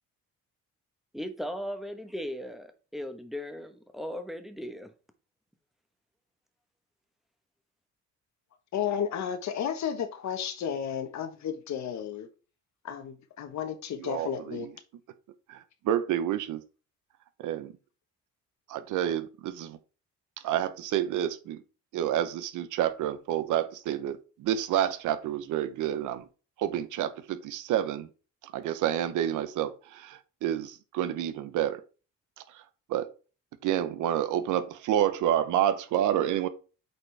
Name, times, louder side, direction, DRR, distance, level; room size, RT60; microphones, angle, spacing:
voice 1, 1.1-4.9, equal, ahead, 1.1 m, -37 dB
voice 2, 8.7-12.3 12.8-14.7, left 8 dB, 65° left, 1.3 m, -33 dB
voice 3, 14.0-14.7 15.5-16.6 17.4-17.7 18.7-19.8 20.4-21.6 21.9-26.3 26.6-28.1 28.5-31.8 32.9-33.1 33.6-36.5, right 11 dB, 85° right, 0.8 m, -29 dB
8.2 x 4.3 x 3.4 m
cardioid pair, 90°, 30 cm